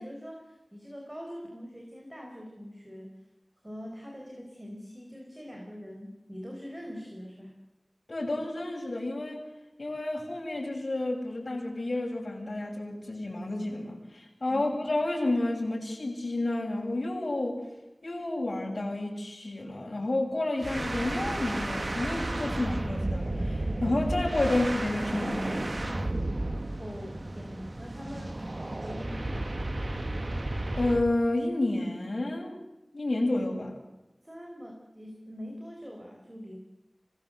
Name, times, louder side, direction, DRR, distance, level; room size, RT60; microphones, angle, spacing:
voice 1, 0.0-3.2 3.6-7.6 14.5-14.7 26.8-28.4 28.8-29.6 34.2-36.6, equal, 15° right, 1 dB, 5.2 m, -43 dB
voice 2, 8.1-9.4 9.8-17.6 18.0-26.1 30.7-32.5 32.9-33.8, left 2 dB, 60° left, 0 dB, 7.4 m, -30 dB
sound 1, 20.6-31.1, right 1 dB, 50° right, 1.7 m, -33 dB
25.5 x 20.0 x 8.2 m, 0.98 s
wide cardioid pair, 45°, 0 cm